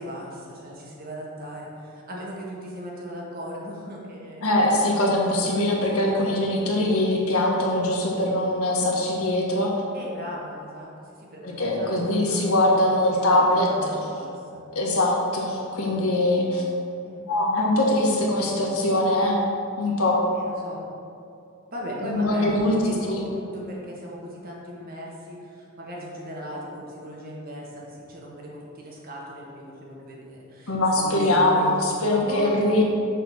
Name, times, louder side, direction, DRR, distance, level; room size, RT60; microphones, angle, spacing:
voice 1, 0.0-4.5 5.1-6.6 9.9-12.4 12.8-12.9 13.2-14.6 17.0-17.2 20.3-20.8 21.7-32.6, equal, 45° right, -3 dB, 1.5 m, -38 dB
voice 2, 4.4-9.7 11.4-13.9 14.7-16.6 17.3-19.4 19.8-20.2 22.0-22.7 23.1-23.2 30.7-32.8, left 1 dB, 85° left, -2 dB, 1.5 m, -22 dB
6.8 x 4.2 x 6.2 m, 2.5 s
head